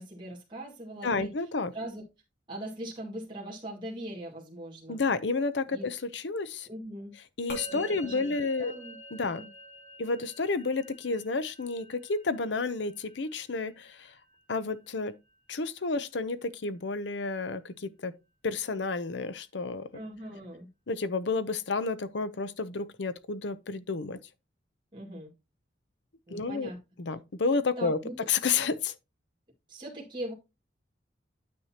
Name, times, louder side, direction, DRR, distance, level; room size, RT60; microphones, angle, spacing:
voice 1, 0.0-1.3 1.7-2.0 2.5-5.0 5.7-5.9 6.7-7.1 7.7-8.3 8.6-9.0 9.4-9.5 19.9-20.7 24.9-25.3 26.3-26.8 27.8-28.3 29.7-30.3, right 1 dB, 25° right, 2.1 m, -40 dB
voice 2, 1.0-1.7 4.9-6.7 7.4-8.7 9.1-9.4 10.0-14.1 14.5-15.1 15.5-18.1 18.4-19.9 20.9-24.2 26.3-26.7 27.0-28.0 28.3-28.9, left 4 dB, 70° left, 0.7 m, -31 dB
Musical instrument, 7.5-17.0, equal, 50° left, 3.0 m, -48 dB
9.4 x 6.5 x 2.9 m
head